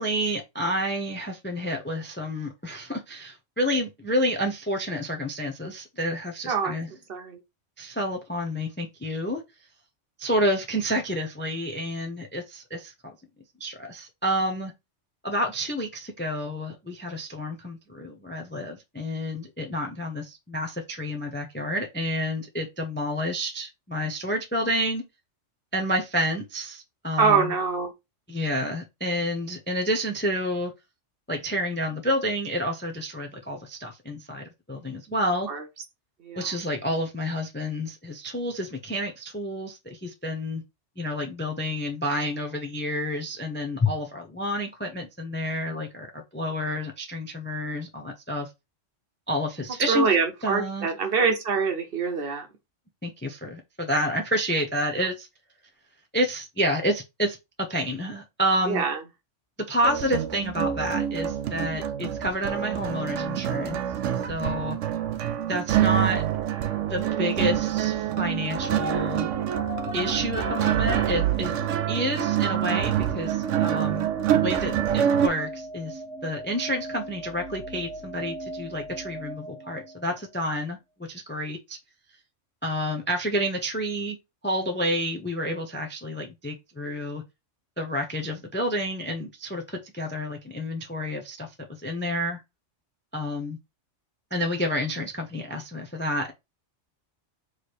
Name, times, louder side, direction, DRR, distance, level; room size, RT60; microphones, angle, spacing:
voice 1, 0.0-6.9 7.8-9.4 10.2-12.9 13.6-14.7 15.2-25.0 25.7-27.5 28.3-30.7 31.3-35.5 36.4-40.6 41.0-48.5 49.3-50.1 50.4-50.9 53.0-55.3 56.1-57.4 57.7-58.8 59.7-63.8 64.3-64.8 65.5-66.2 66.9-69.3 69.9-71.5 71.9-80.8 81.1-81.8 82.6-84.2 84.4-87.2 87.8-91.5 91.8-92.4 93.1-93.6 94.3-96.3, equal, 15° left, 0.4 m, -29 dB
voice 2, 7.1-7.4 27.2-27.9 35.5-35.6 36.2-36.5 49.9-52.5 58.7-59.0, right 5 dB, 55° right, 0.9 m, -24 dB
sound 1, 59.8-75.3, right 11 dB, 80° right, 0.9 m, -26 dB
sound 2, 68.2-80.3, right 1 dB, 60° left, 1.6 m, -38 dB
3.3 x 3.2 x 4.2 m
omnidirectional pair, 1.3 m